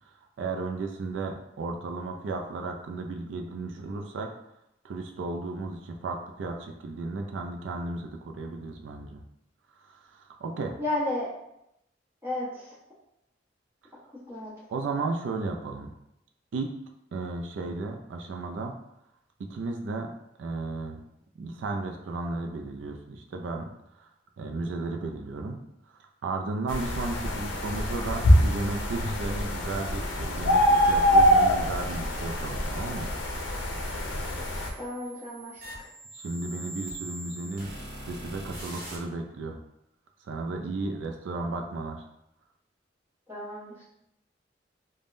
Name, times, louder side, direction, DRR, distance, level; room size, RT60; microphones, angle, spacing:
voice 1, 0.1-4.3 4.8-9.2 9.8-10.7 14.7-15.9 16.5-16.7 17.1-18.7 19.4-20.1 20.4-21.0 21.4-23.7 24.0-24.1 24.4-25.6 26.2-33.6 36.1-37.7 38.0-39.6 40.2-42.0, right 3 dB, 90° right, 3 dB, 0.4 m, -34 dB
voice 2, 10.8-11.3 12.2-12.7 14.3-14.5 34.8-35.9 43.3-43.8, left 1 dB, 15° right, -8 dB, 1.0 m, -33 dB
sound 1, 26.7-34.7, equal, 85° left, 0.5 m, -24 dB
sound 2, 30.8-39.0, right 1 dB, 50° right, 0.9 m, -44 dB
3.4 x 2.1 x 2.5 m, 0.81 s
head